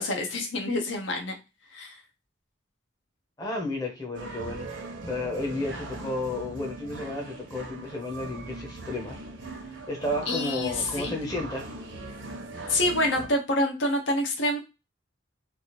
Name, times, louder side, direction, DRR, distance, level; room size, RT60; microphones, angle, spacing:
voice 1, 0.0-1.3 1.7-2.0 10.3-11.2 12.7-14.6, left 1 dB, 70° left, 2 dB, 0.8 m, -27 dB
voice 2, 3.4-4.8 5.1-9.2 9.9-11.7, left 2 dB, 20° left, 0 dB, 0.7 m, -32 dB
sound 1, 4.1-13.3, right 2 dB, 65° right, 0.7 m, -40 dB
3.3 x 2.5 x 2.9 m, 0.26 s
head